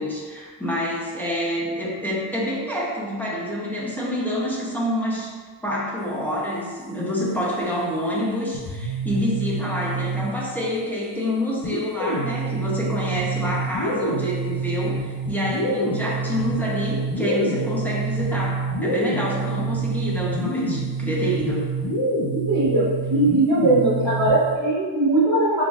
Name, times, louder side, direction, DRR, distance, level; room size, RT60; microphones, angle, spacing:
voice 1, 0.0-5.3 5.6-21.7, equal, 5° left, -6 dB, 0.8 m, -27 dB
sound 1, 8.5-10.7 11.6-24.6, right 3 dB, 75° left, 0.8 m, -27 dB
voice 2, 22.3-25.6, right 2 dB, 65° right, -9 dB, 1.1 m, -20 dB
3.9 x 3.7 x 2.4 m, 1.5 s
wide cardioid pair, 110°, 43 cm